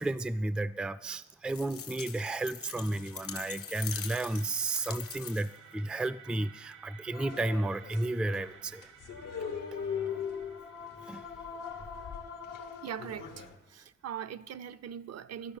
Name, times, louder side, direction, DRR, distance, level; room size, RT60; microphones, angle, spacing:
voice 1, 0.0-8.9 11.1-11.2, right 2 dB, 5° right, 0.3 m, -33 dB
sound 1, 1.5-5.7, left 8 dB, 45° left, 0.5 m, -42 dB
sound 2, 1.7-13.5, right 8 dB, 75° right, 1.0 m, -57 dB
sound 3, 7.1-13.6, left 7 dB, 85° left, 1.1 m, -40 dB
voice 2, 12.8-13.4 13.7-15.6, right 9 dB, 55° right, 0.5 m, -41 dB
11.5 x 5.8 x 8.8 m
cardioid pair, 75°, 31 cm